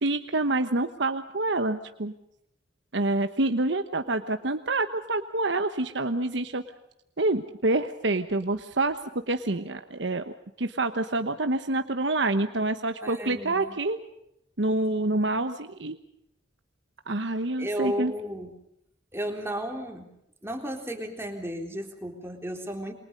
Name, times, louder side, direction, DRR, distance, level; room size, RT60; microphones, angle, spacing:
voice 1, 0.0-2.1 2.9-6.6 7.2-9.0 9.3-14.0 14.6-16.0 17.1-18.1, right 2 dB, 75° right, 8 dB, 1.1 m, -27 dB
voice 2, 13.0-13.8 17.6-18.5 19.1-20.1 20.4-22.9, equal, 15° right, 3 dB, 3.7 m, -33 dB
28.0 x 23.0 x 5.3 m, 0.79 s
head